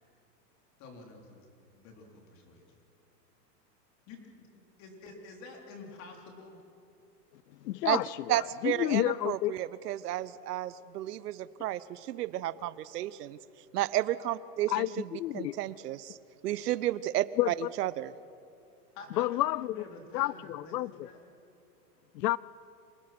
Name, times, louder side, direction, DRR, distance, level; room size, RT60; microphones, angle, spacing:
voice 1, 0.8-2.7 4.1-4.5 4.8-6.6 18.9-21.2, left 3 dB, 35° left, 2 dB, 4.0 m, -49 dB
voice 2, 7.6-9.6 14.7-15.6 17.4-17.7 19.2-19.8 20.1-20.9 22.1-22.4, left 15 dB, 85° left, 21 dB, 0.6 m, -30 dB
voice 3, 8.3-13.4 13.7-14.8 15.3-16.2 16.4-18.1, right 14 dB, 70° right, 17 dB, 1.0 m, -32 dB
27.5 x 19.0 x 6.0 m, 2.6 s
supercardioid pair, 150°, 48 cm